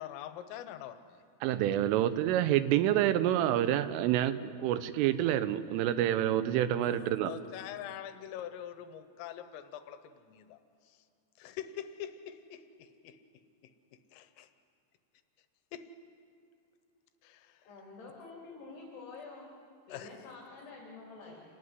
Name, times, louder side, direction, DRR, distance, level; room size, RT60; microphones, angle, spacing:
voice 1, 0.0-1.2 6.8-10.6 10.9-11.0 11.4-13.4 14.1-14.5 15.7-15.9 17.2-17.6 19.9-20.1, left 10 dB, 85° left, 10 dB, 3.6 m, -44 dB
voice 2, 1.4-7.3, right 12 dB, 80° right, 13 dB, 3.4 m, -28 dB
voice 3, 17.6-19.5 19.9-21.4, left 3 dB, 55° left, -3 dB, 5.3 m, -48 dB
28.5 x 17.5 x 9.7 m, 2.5 s
omnidirectional pair, 5.8 m